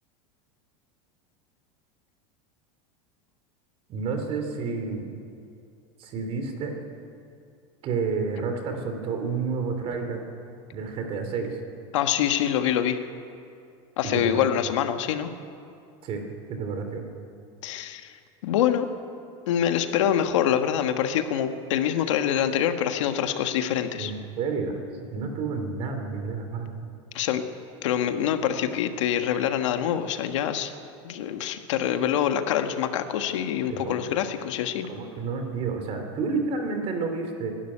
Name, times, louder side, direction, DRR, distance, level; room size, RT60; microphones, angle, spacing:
voice 1, 3.9-5.1 6.0-6.8 7.8-10.2 10.7-11.6 14.0-14.5 16.0-16.2 16.5-17.0 24.0-24.8 25.1-26.8 33.7-33.9 34.9-37.5, right 4 dB, 40° right, 5 dB, 3.2 m, -30 dB
voice 2, 11.9-13.0 14.0-15.3 17.6-18.1 18.4-18.9 19.5-24.1 27.1-27.4 27.8-30.7 31.0-34.9, left 10 dB, 90° left, 7 dB, 1.6 m, -25 dB
22.0 x 12.5 x 10.0 m, 2.5 s
supercardioid pair, 150°, 15 cm